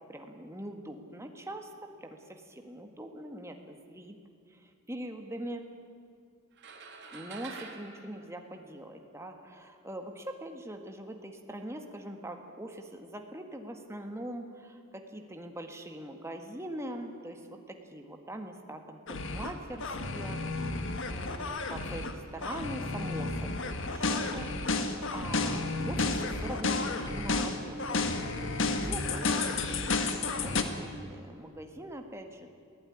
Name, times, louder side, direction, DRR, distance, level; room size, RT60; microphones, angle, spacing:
voice 1, 0.1-4.2 4.5-5.6 7.1-20.8 21.0-29.9 30.2-32.5, right 1 dB, 15° right, 4 dB, 1.6 m, -43 dB
sound 1, 6.6-9.2, right 4 dB, 55° right, 2.5 m, -47 dB
sound 2, 19.1-19.5 19.8-22.1 22.4-30.6, left 3 dB, 65° left, 1.7 m, -31 dB
21.5 x 15.5 x 10.0 m, 2.3 s
head